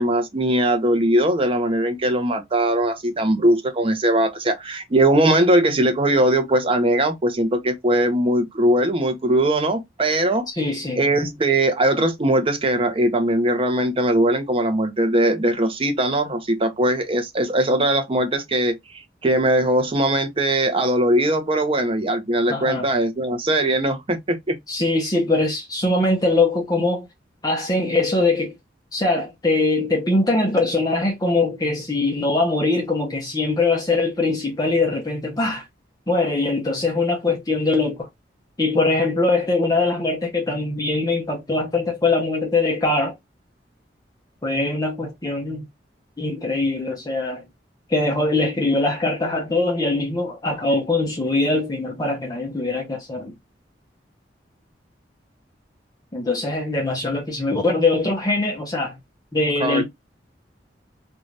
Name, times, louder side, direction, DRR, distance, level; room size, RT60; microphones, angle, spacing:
voice 1, 0.0-10.5 11.0-18.8 19.2-24.6 59.6-59.8, right 1 dB, 30° right, 0.6 m, -20 dB
voice 2, 10.5-11.1 22.5-22.9 24.7-27.1 27.4-28.5 28.9-35.6 36.1-38.1 38.6-43.1 44.4-45.6 46.2-47.4 47.9-53.3 56.1-59.0 59.3-59.8, left 2 dB, 20° left, 0.7 m, -22 dB
2.6 x 2.3 x 3.1 m
head